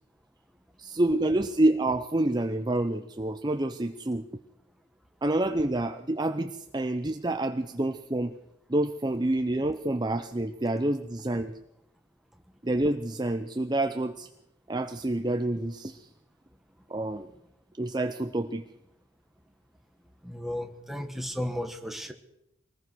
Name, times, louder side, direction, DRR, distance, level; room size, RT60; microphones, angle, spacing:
voice 1, 0.8-4.3 5.2-8.3 8.7-11.5 12.6-14.3 14.7-16.1 16.9-17.3 17.8-18.6, right 1 dB, 20° right, 8 dB, 0.7 m, -28 dB
voice 2, 20.2-22.1, equal, ahead, 5 dB, 1.7 m, -34 dB
23.5 x 19.5 x 6.3 m, 0.81 s
head